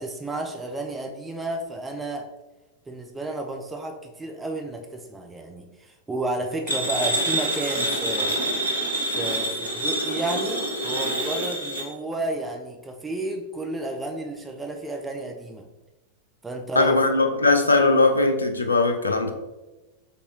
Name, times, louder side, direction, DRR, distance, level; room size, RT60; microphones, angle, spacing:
voice 1, 0.0-2.3 2.9-8.4 9.1-15.7 16.4-17.0, right 2 dB, 10° right, 3 dB, 0.4 m, -32 dB
sound 1, 6.7-11.9, right 1 dB, 90° right, 0.9 m, -26 dB
voice 2, 16.8-19.3, left 3 dB, 80° left, 5 dB, 0.4 m, -19 dB
4.2 x 3.3 x 2.8 m, 1.1 s
figure-of-eight pair, 90°, 0 cm